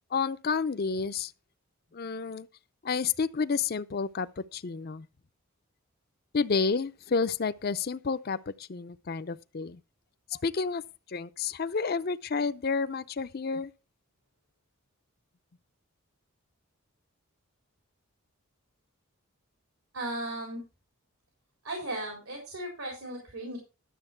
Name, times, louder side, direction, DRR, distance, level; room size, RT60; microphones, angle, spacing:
voice 1, 0.1-1.3 1.9-2.5 2.8-5.1 6.3-9.8 10.3-10.8 11.1-13.7, left 5 dB, 45° left, 0.5 m, -30 dB
voice 2, 19.9-20.6 21.6-23.6, right 1 dB, 80° right, 4.0 m, -36 dB
12.0 x 7.1 x 4.5 m
head